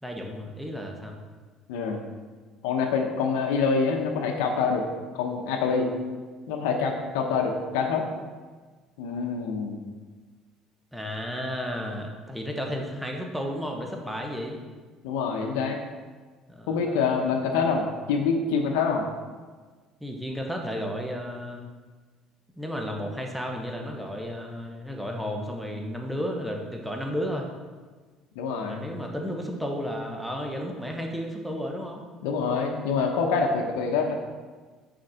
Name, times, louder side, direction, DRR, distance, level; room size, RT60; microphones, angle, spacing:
voice 1, 0.0-1.2 10.9-14.6 16.5-17.2 20.0-21.6 22.6-27.5 28.6-32.0, equal, 5° right, 1 dB, 1.0 m, -33 dB
voice 2, 2.6-4.9 5.1-5.9 6.5-8.1 9.0-9.8 15.0-15.8 16.7-19.1 28.4-28.8 32.2-34.2, left 5 dB, 90° left, 2 dB, 0.8 m, -26 dB
6.4 x 4.4 x 5.6 m, 1.4 s
supercardioid pair, 100°, 0 cm